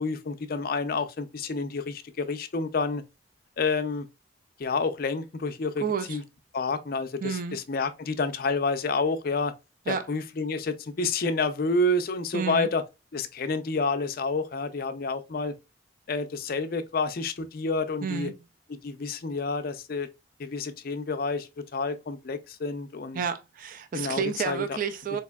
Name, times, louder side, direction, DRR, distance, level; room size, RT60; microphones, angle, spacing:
voice 1, 0.0-3.0 3.6-4.1 4.6-6.2 6.5-9.5 9.9-12.8 13.1-15.6 16.1-18.3 18.7-20.1 20.4-23.2 23.9-24.8, left 3 dB, 50° left, 0.4 m, -29 dB
voice 2, 5.8-6.2 7.2-7.6 9.9-10.1 12.3-12.7 18.0-18.3 23.1-25.2, right 6 dB, 45° right, 0.3 m, -30 dB
4.2 x 2.9 x 2.2 m
head